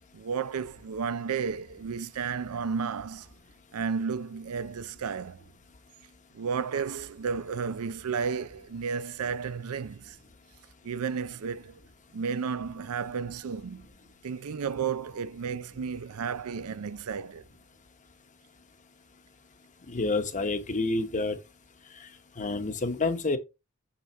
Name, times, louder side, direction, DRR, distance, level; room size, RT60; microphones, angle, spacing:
voice 1, 0.1-3.3 3.7-5.4 6.3-10.2 10.8-11.7 12.1-13.9 14.2-17.4, right 6 dB, 75° right, 0.5 m, -32 dB
voice 2, 19.9-21.4 22.4-23.4, left 3 dB, 35° left, 1.0 m, -28 dB
7.0 x 5.9 x 3.0 m
head